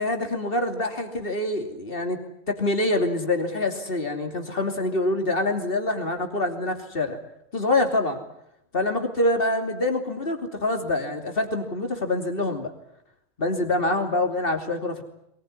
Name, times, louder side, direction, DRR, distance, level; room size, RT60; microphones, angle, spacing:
voice 1, 0.0-2.2 2.5-7.2 7.5-8.2 8.7-12.7 13.4-15.0, left 2 dB, 45° left, 5 dB, 3.1 m, -25 dB
22.0 x 20.5 x 9.7 m, 0.77 s
omnidirectional pair, 1.3 m